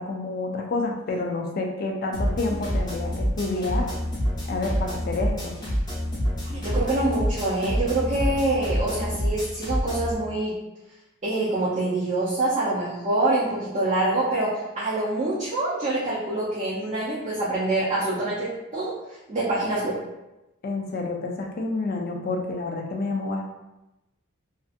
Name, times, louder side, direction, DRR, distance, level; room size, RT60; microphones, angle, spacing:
voice 1, 0.0-3.9 4.5-5.6 20.6-23.4, left 3 dB, 45° left, 1 dB, 0.4 m, -29 dB
sound 1, 2.1-10.1, equal, 20° left, 0.8 m, -27 dB
voice 2, 6.5-10.5 11.2-18.9 19.3-20.0, right 2 dB, 35° right, -9 dB, 0.5 m, -25 dB
2.6 x 2.5 x 2.4 m, 0.96 s
head